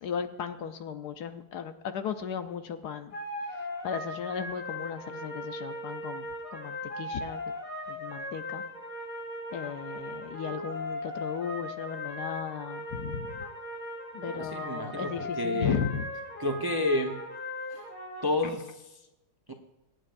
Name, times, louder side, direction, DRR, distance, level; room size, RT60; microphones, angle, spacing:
voice 1, 0.0-3.1 3.8-7.4 7.9-8.6 9.5-13.4 14.1-16.1 18.4-18.5, left 7 dB, 65° left, 8 dB, 1.2 m, -35 dB
sound 1, 3.1-18.2, left 1 dB, 50° left, 6.3 m, -38 dB
voice 2, 14.3-15.8 16.4-17.2 17.7-17.8 18.2-18.6 19.5-19.6, left 2 dB, 20° right, 3 dB, 0.7 m, -30 dB
25.5 x 9.2 x 2.6 m, 0.96 s
omnidirectional pair, 2.0 m